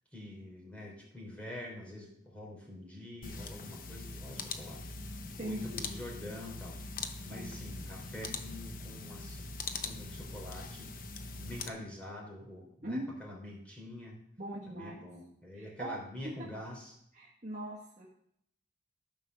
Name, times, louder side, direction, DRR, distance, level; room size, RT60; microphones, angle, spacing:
voice 1, 0.1-4.8 5.1-6.8 7.2-9.5 9.8-11.0 11.4-14.2 14.7-16.9, left 1 dB, 5° left, -3 dB, 3.3 m, -46 dB
sound 1, 3.2-11.7, left 3 dB, 50° left, 0.8 m, -42 dB
voice 2, 5.4-5.9 7.3-7.5 12.8-13.1 14.4-15.0 15.5-16.3 17.1-18.1, right 1 dB, 40° right, -5 dB, 1.5 m, -40 dB
13.0 x 5.4 x 6.2 m, 0.71 s
head